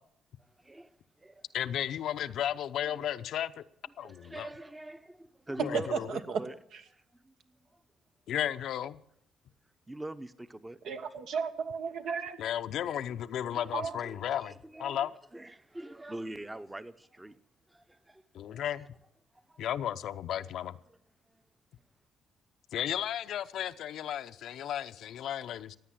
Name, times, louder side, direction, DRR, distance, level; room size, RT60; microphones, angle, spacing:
voice 1, 1.5-3.6 4.0-4.5 5.6-6.1 8.3-9.0 12.4-14.5 14.8-15.1 18.3-18.9 19.6-20.8 22.7-25.8, left 10 dB, 75° left, 0.6 m, -34 dB
voice 2, 4.0-5.9 6.3-6.5 6.9-7.3 9.9-10.8 13.0-13.2 13.5-17.4 17.7-18.2 18.5-18.6, right 1 dB, 15° right, 0.8 m, -44 dB
voice 3, 5.9-6.4 6.7-6.8 10.8-12.4 13.7-14.0, right 6 dB, 75° right, 1.4 m, -34 dB
16.0 x 9.5 x 7.6 m
cardioid pair, 90°, 0 cm